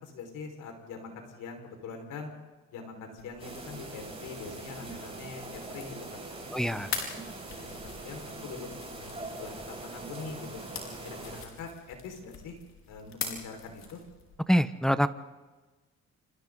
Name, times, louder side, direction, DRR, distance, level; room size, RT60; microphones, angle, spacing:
voice 1, 0.0-2.3 2.7-6.2 6.6-7.3 7.6-8.7 9.0-10.6 11.0-12.6 12.9-14.0, left 4 dB, 85° left, 4 dB, 5.3 m, -43 dB
sound 1, 3.2-14.4, left 5 dB, 65° left, 5.1 m, -44 dB
sound 2, 3.4-11.4, right 2 dB, 20° right, 7.8 m, -42 dB
voice 2, 6.5-6.9 14.5-15.1, equal, ahead, 11 dB, 1.0 m, -24 dB
27.5 x 27.0 x 4.0 m, 1.3 s
cardioid pair, 90°, 30 cm